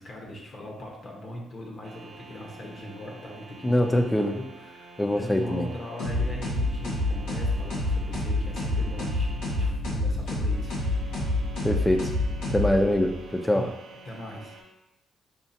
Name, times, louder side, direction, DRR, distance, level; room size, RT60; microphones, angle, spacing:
voice 1, 0.0-10.8 13.4-13.7 14.0-14.6, equal, 50° left, -1 dB, 1.0 m, -40 dB
sound 1, 1.8-9.7 10.4-14.6, right 3 dB, 60° right, 0.9 m, -48 dB
voice 2, 3.6-4.4 5.0-5.7 11.6-12.0 12.5-13.6, left 1 dB, 10° left, 4 dB, 0.5 m, -23 dB
sound 2, 6.0-13.1, left 2 dB, 85° left, 1.3 m, -28 dB
sound 3, 8.0-12.5, right 1 dB, 15° right, 0.8 m, -43 dB
5.6 x 2.4 x 2.8 m, 0.88 s
cardioid pair, 90°, 0 cm